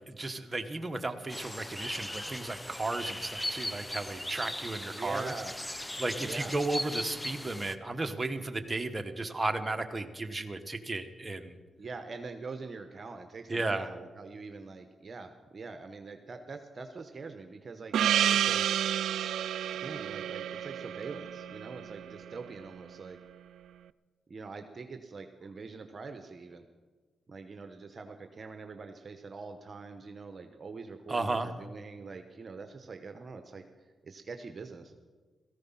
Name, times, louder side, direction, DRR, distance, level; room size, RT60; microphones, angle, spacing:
voice 1, 0.1-5.3 6.0-11.6 13.5-13.9 31.1-31.5, right 2 dB, 25° right, 7 dB, 1.5 m, -34 dB
sound 1, 1.3-7.7, left 1 dB, 10° left, 0.9 m, -38 dB
voice 2, 4.9-5.5 6.2-6.6 11.8-18.8 19.8-23.2 24.3-26.7 27.3-33.6 34.0-34.9, right 4 dB, 45° right, 7 dB, 1.1 m, -44 dB
Gong, 17.9-22.7, right 10 dB, 85° right, 0.4 m, -30 dB
17.0 x 14.5 x 5.7 m, 1.4 s
cardioid pair, 60°, 0 cm